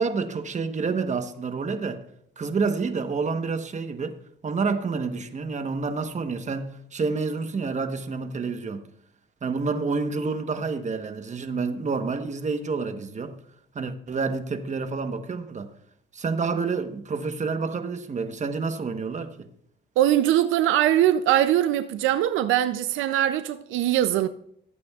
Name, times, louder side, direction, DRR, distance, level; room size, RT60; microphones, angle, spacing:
voice 1, 0.0-2.0 2.4-4.2 4.4-8.8 9.4-13.3 13.7-15.7 16.1-19.5, right 4 dB, 35° right, 1.1 m, -28 dB
voice 2, 20.0-24.3, right 12 dB, 85° right, 0.5 m, -21 dB
18.5 x 8.6 x 2.4 m
cardioid pair, 90°, 20 cm